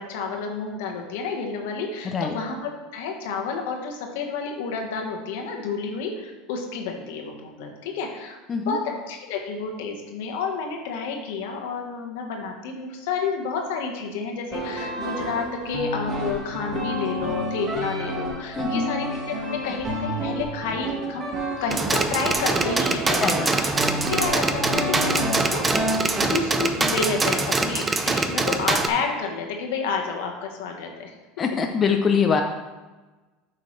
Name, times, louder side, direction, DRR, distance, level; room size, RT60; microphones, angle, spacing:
voice 1, 0.0-21.3 21.6-23.8 24.1-25.6 26.1-31.2, left 4 dB, 75° left, 2 dB, 1.3 m, -30 dB
voice 2, 2.0-2.3 8.5-8.8 18.6-18.9 23.2-23.4 31.4-32.4, left 6 dB, 35° left, 4 dB, 0.6 m, -23 dB
sound 1, 14.5-26.2, right 1 dB, 40° right, 1.6 m, -30 dB
sound 2, 21.7-28.9, right 3 dB, 20° right, 0.7 m, -24 dB
8.0 x 5.6 x 3.3 m, 1.2 s
hypercardioid pair, 95°, 0 cm